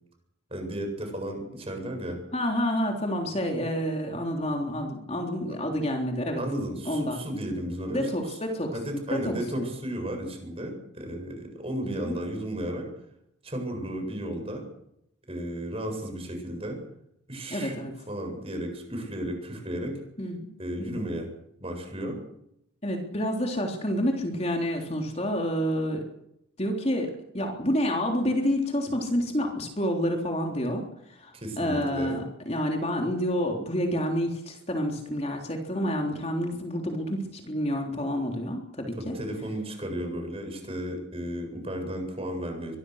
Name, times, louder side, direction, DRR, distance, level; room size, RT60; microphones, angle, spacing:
voice 1, 0.5-2.2 6.4-8.4 8.7-12.9 13.4-14.6 15.3-16.8 17.3-17.8 18.1-20.0 20.6-21.3 21.6-22.2 31.3-32.2 39.0-42.8, equal, 30° right, 4 dB, 7.8 m, -34 dB
voice 2, 2.3-6.4 6.9-7.2 7.9-8.7 9.1-9.7 12.0-12.2 17.5-17.9 20.2-20.5 20.8-21.1 22.8-26.0 26.6-30.8 31.1-39.1, equal, 30° left, 2 dB, 3.5 m, -29 dB
24.0 x 22.0 x 6.5 m, 0.77 s
head